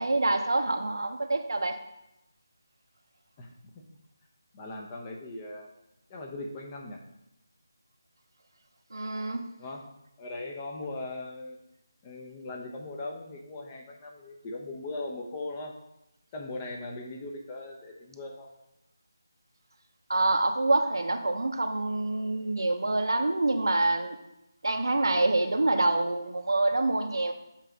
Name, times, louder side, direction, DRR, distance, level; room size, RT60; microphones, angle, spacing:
voice 1, 0.0-1.8 8.9-9.4 20.1-24.2 24.6-27.3, right 2 dB, 80° right, 6 dB, 0.9 m, -26 dB
voice 2, 4.5-5.7 6.1-7.0 9.6-9.9 10.2-11.6 12.0-15.8 16.3-18.5, left 2 dB, 20° left, 1 dB, 0.7 m, -39 dB
7.4 x 3.3 x 5.1 m, 0.88 s
figure-of-eight pair, 165°, 2 cm